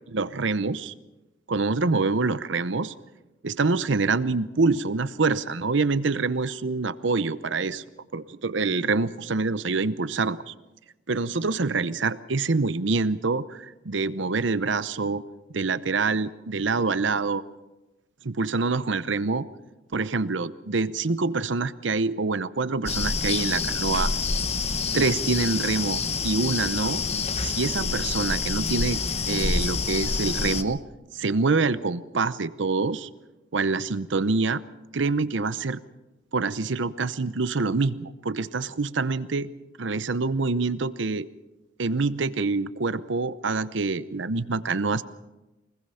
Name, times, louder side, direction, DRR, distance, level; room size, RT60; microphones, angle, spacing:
voice 1, 0.1-0.9 1.5-2.9 3.4-7.8 8.1-10.5 11.1-15.2 15.5-17.4 18.2-19.4 19.9-24.1 24.9-27.0 27.4-29.0 29.3-30.8 31.1-33.1 33.5-34.6 34.9-35.8 36.3-39.5 39.8-41.3 41.8-45.0, right 3 dB, 65° right, 15 dB, 0.8 m, -26 dB
sound 1, 22.9-30.6, left 4 dB, 35° left, 1.0 m, -27 dB
24.5 x 20.5 x 5.7 m, 1.0 s
head